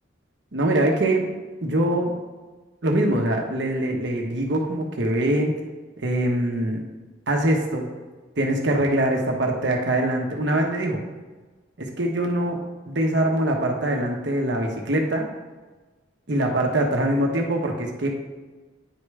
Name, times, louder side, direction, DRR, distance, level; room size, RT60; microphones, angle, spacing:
voice 1, 0.5-1.3 1.6-2.1 2.8-5.5 6.0-6.8 7.3-7.9 8.4-11.0 11.8-12.6 12.9-15.3 16.3-18.1, right 1 dB, 65° right, 1 dB, 1.1 m, -23 dB
9.6 x 3.3 x 4.8 m, 1.3 s
head